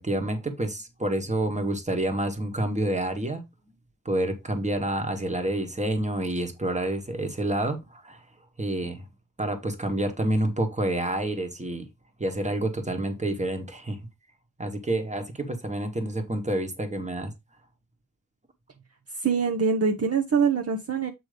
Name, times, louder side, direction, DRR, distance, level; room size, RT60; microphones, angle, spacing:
voice 1, 0.0-3.4 4.0-8.2 8.6-9.0 9.4-11.9 12.2-14.0 14.6-17.3, right 1 dB, 20° right, 1.5 m, -28 dB
voice 2, 19.2-21.1, right 5 dB, 50° right, 0.9 m, -24 dB
7.9 x 3.1 x 5.0 m
wide cardioid pair, 85°, 32 cm